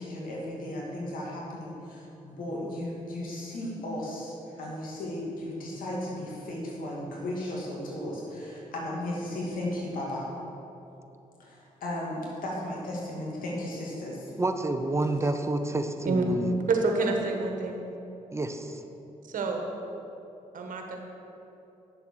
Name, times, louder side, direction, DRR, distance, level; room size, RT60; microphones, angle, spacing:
voice 1, 0.0-10.3 11.4-14.3, left 1 dB, 80° left, -3 dB, 2.3 m, -35 dB
voice 2, 14.4-16.5 18.3-18.8, right 2 dB, 20° right, 6 dB, 0.9 m, -29 dB
voice 3, 16.7-17.8 19.3-19.7 20.5-21.0, right 3 dB, 70° right, 2 dB, 1.4 m, -27 dB
8.7 x 6.9 x 6.4 m, 2.9 s
cardioid pair, 60°, 14 cm